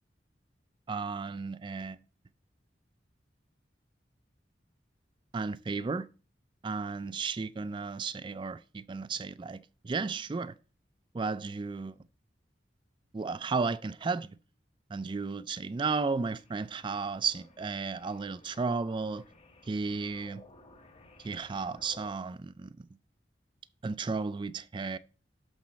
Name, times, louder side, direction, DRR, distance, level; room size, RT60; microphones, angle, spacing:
voice 1, 0.9-2.0 5.3-6.1 6.6-10.6 11.1-12.0 13.1-14.4 14.9-19.2 19.7-20.4 21.2-22.9 23.8-25.0, right 4 dB, 25° right, 0.3 m, -34 dB
sound 1, 16.4-22.1, left 2 dB, 35° left, 1.2 m, -56 dB
11.5 x 4.2 x 6.1 m
head